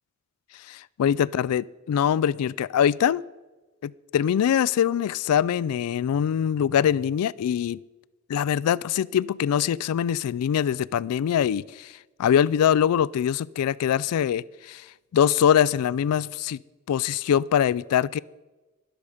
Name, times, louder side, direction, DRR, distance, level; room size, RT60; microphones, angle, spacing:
voice 1, 0.5-3.2 3.8-7.8 8.3-14.9 15.1-16.6 16.9-18.2, left 9 dB, 90° left, 19 dB, 0.3 m, -23 dB
20.5 x 6.9 x 5.0 m, 1.2 s
head